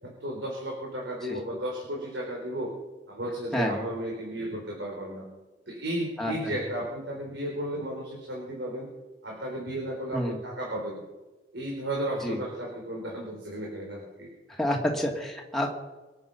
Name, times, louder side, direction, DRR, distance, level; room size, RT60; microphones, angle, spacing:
voice 1, 0.0-2.7 3.1-5.3 5.7-8.9 9.2-11.0 11.5-14.3, right 1 dB, 85° right, -2 dB, 4.2 m, -34 dB
voice 2, 14.6-15.7, left 1 dB, ahead, -1 dB, 2.6 m, -28 dB
25.0 x 9.1 x 5.6 m, 1.2 s
head